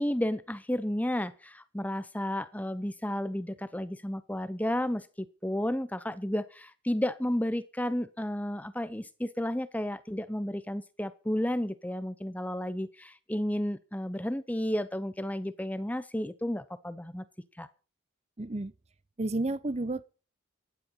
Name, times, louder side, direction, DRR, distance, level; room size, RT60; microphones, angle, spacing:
voice 1, 0.0-17.3 17.6-17.7, left 1 dB, 5° left, 0.8 m, -32 dB
voice 2, 18.4-18.7 19.2-20.0, right 2 dB, 30° right, 0.7 m, -31 dB
15.5 x 11.0 x 5.6 m
head